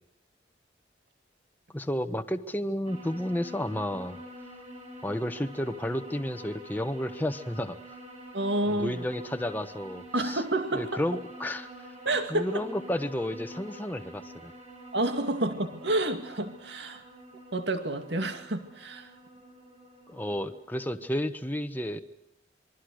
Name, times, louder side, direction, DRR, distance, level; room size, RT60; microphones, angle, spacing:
voice 1, 1.7-4.2 5.0-7.8 8.7-10.4 10.7-11.9 12.3-14.5 20.1-22.0, left 1 dB, 10° left, 7 dB, 1.1 m, -32 dB
sound 1, 2.8-20.6, right 1 dB, 35° right, 8.0 m, -47 dB
voice 2, 8.3-9.0 10.1-11.0 12.1-12.7 14.9-17.0 17.5-19.1, right 2 dB, 70° right, 7 dB, 2.3 m, -29 dB
27.5 x 23.0 x 6.5 m, 0.78 s
head